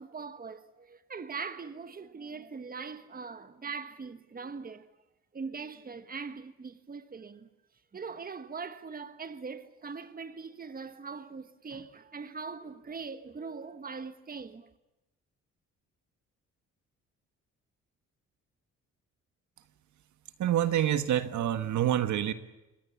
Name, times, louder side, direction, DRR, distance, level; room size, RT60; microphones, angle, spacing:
voice 1, 0.0-4.9 5.3-7.5 7.9-14.7, right 5 dB, 30° right, 1.5 m, -41 dB
voice 2, 20.4-22.3, right 11 dB, 70° right, 1.6 m, -27 dB
28.0 x 21.0 x 7.2 m
cardioid pair, 90°, 30 cm